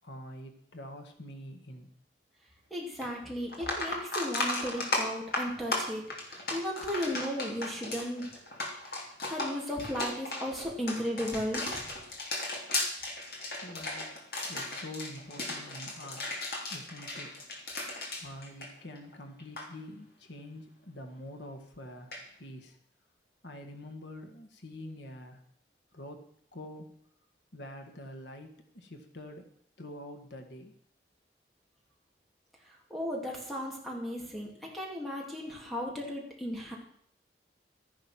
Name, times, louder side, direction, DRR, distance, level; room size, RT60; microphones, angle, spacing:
voice 1, 0.0-1.9 13.6-16.2 16.7-17.4 18.2-22.8 23.4-25.4 25.9-26.2 26.5-26.9 27.5-29.5 29.8-30.7, left 1 dB, 80° left, 5 dB, 1.8 m, -46 dB
voice 2, 2.7-8.3 8.8-8.9 9.2-11.8 32.9-36.8, equal, ahead, -2 dB, 3.0 m, -35 dB
sound 1, 3.0-3.1 3.5-19.1 19.4-19.7 22.1-22.2, left 2 dB, 55° left, 3.1 m, -35 dB
13.0 x 10.0 x 6.1 m, 0.67 s
head